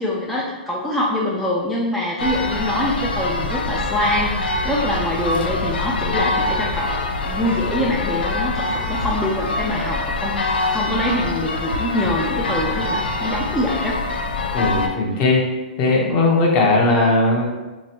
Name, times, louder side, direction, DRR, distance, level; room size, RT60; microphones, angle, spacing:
voice 1, 0.0-14.0, left 1 dB, 5° left, -5 dB, 0.4 m, -24 dB
sound 1, 2.2-14.9, left 2 dB, 85° left, 0.5 m, -24 dB
voice 2, 14.5-15.4 15.8-17.4, left 2 dB, 35° left, -2 dB, 0.9 m, -18 dB
3.2 x 3.1 x 2.9 m, 1.2 s
hypercardioid pair, 140°, 5 cm